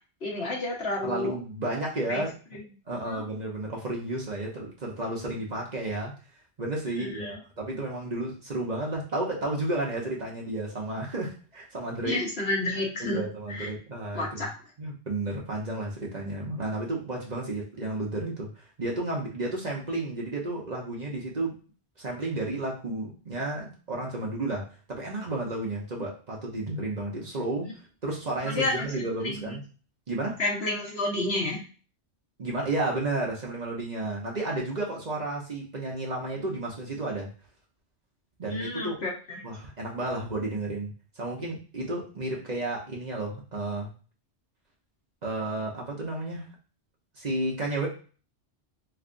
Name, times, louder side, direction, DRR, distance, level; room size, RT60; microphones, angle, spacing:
voice 1, 0.2-1.3 2.1-2.2 2.5-2.6 3.0-3.2 7.0-7.4 12.0-13.7 14.1-14.5 28.4-29.6 30.4-31.6 38.5-39.4, left 2 dB, 65° left, -3 dB, 1.3 m, -30 dB
voice 2, 1.0-2.3 2.9-6.1 6.6-12.2 13.0-14.5 14.8-21.6 22.0-27.7 28.0-29.6 30.1-30.4 32.4-37.3 38.4-39.0 39.4-43.9 45.2-46.5 47.2-47.9, right 2 dB, 40° right, -2 dB, 0.9 m, -32 dB
3.3 x 3.2 x 2.5 m, 0.37 s
omnidirectional pair, 1.2 m